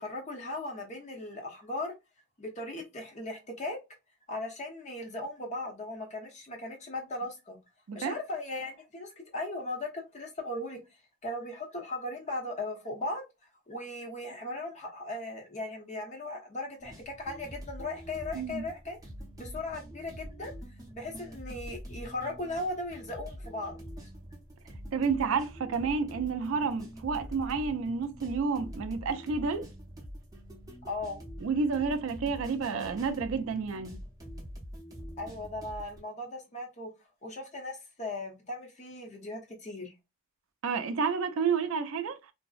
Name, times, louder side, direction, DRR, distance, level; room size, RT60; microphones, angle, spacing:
voice 1, 0.0-1.9 2.4-3.8 4.3-7.6 7.9-10.8 11.2-13.2 13.7-19.0 19.4-20.5 20.9-23.8 30.8-31.2 35.2-36.9 37.2-39.9, left 2 dB, 35° left, 0.7 m, -37 dB
sound 1, 16.8-36.0, equal, 15° right, 0.6 m, -45 dB
voice 2, 24.9-29.7 31.4-34.0 40.6-42.2, right 5 dB, 70° right, 0.4 m, -30 dB
2.5 x 2.0 x 2.3 m
head